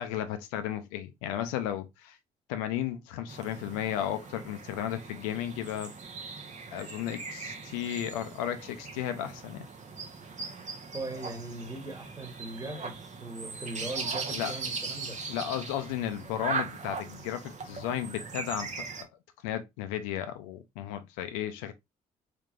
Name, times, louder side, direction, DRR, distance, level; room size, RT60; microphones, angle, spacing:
voice 1, 0.0-2.2 2.5-5.9 6.7-9.7 14.3-14.5 15.3-19.1 19.4-21.7, left 11 dB, 75° left, 0.4 m, -34 dB
sound 1, 3.3-19.0, right 4 dB, 40° right, 0.8 m, -39 dB
voice 2, 10.9-15.2, right 2 dB, 20° right, 1.4 m, -39 dB
3.4 x 3.2 x 2.4 m
hypercardioid pair, 45°, 19 cm